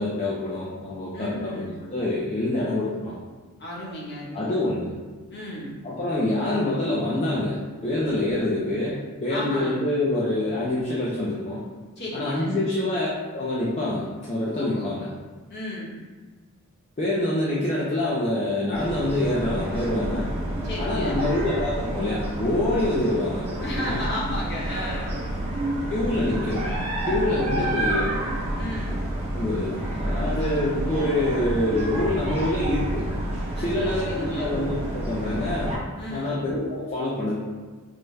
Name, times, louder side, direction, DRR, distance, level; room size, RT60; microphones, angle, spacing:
voice 1, 0.0-3.1 4.3-5.0 5.8-7.6 7.8-11.6 12.1-15.1 17.0-20.3 20.8-24.0 25.9-26.7 27.1-28.1 29.3-33.0 33.6-35.8 36.1-37.4, left 1 dB, 30° left, -7 dB, 0.5 m, -26 dB
voice 2, 1.1-1.7 3.6-4.5 5.3-5.7 9.3-9.8 12.0-12.6 14.5-15.0 15.5-15.9 20.6-21.3 23.6-25.2 27.2-27.8 28.5-29.0 33.5-34.5 36.0-36.4, equal, 50° left, -5 dB, 1.0 m, -34 dB
sound 1, 18.7-35.8, right 1 dB, 30° right, 0.9 m, -29 dB
5.4 x 2.2 x 3.2 m, 1.4 s
head